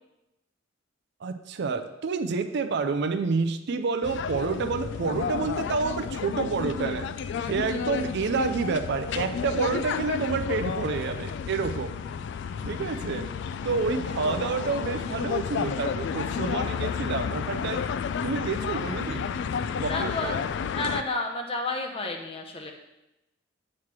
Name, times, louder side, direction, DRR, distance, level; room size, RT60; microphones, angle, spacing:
voice 1, 1.2-7.1 7.4-11.9 12.6-13.3 13.6-17.8 18.2-19.4 19.8-20.4, right 4 dB, 60° right, 8 dB, 0.5 m, -29 dB
sound 1, 4.0-21.0, left 6 dB, 65° left, 0.3 m, -31 dB
voice 2, 19.8-20.4 20.7-22.7, left 2 dB, 30° left, 2 dB, 0.8 m, -31 dB
7.3 x 3.1 x 5.9 m, 0.94 s
head